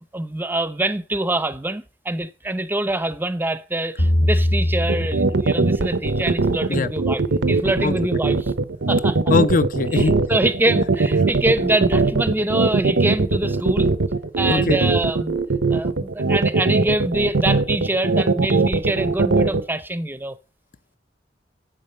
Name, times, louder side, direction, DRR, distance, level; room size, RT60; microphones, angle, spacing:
voice 1, 0.1-7.2 7.5-8.5 8.9-9.2 9.9-13.9 14.4-15.4 15.7-20.4, right 1 dB, 10° right, 0.6 m, -25 dB
sound 1, 4.0-6.2, left 1 dB, 75° left, 2.9 m, -22 dB
sound 2, 4.9-19.6, right 3 dB, 85° right, 0.8 m, -20 dB
voice 2, 9.3-10.2 14.5-14.8, left 3 dB, 50° left, 0.6 m, -20 dB
8.0 x 7.5 x 6.7 m
head